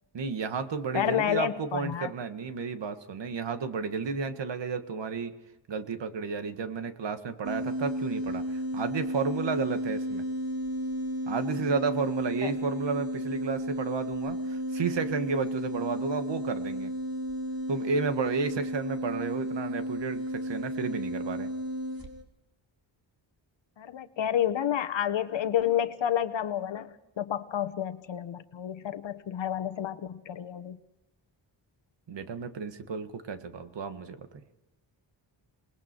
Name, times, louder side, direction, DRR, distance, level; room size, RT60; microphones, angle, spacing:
voice 1, 0.1-5.3 5.7-10.2 11.3-16.9 17.7-21.5 32.1-34.4, right 5 dB, 65° right, 9 dB, 1.8 m, -32 dB
voice 2, 0.9-2.1 12.4-12.5 23.8-30.8, left 10 dB, 70° left, 12 dB, 1.2 m, -30 dB
sound 1, 7.4-22.2, equal, 50° right, 3.2 m, -33 dB
28.0 x 20.5 x 4.6 m, 1.0 s
wide cardioid pair, 105°, 46 cm